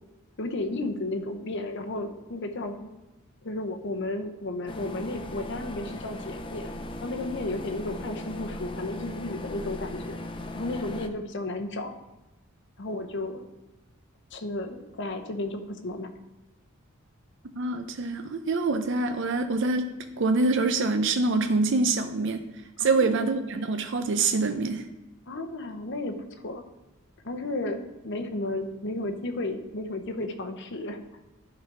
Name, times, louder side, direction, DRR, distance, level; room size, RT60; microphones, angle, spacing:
voice 1, 0.4-2.9 3.4-6.7 7.0-10.2 10.5-11.9 12.8-13.4 14.3-16.1 22.8-23.2 25.3-26.2 26.4-26.6 27.2-31.0, left 2 dB, 60° left, 6 dB, 0.9 m, -33 dB
sound 1, 4.7-11.1, left 1 dB, 25° left, 0.5 m, -38 dB
voice 2, 17.5-19.9 20.2-22.4 22.8-24.8, right 3 dB, 60° right, 7 dB, 0.5 m, -25 dB
11.0 x 4.0 x 4.8 m, 1.1 s
head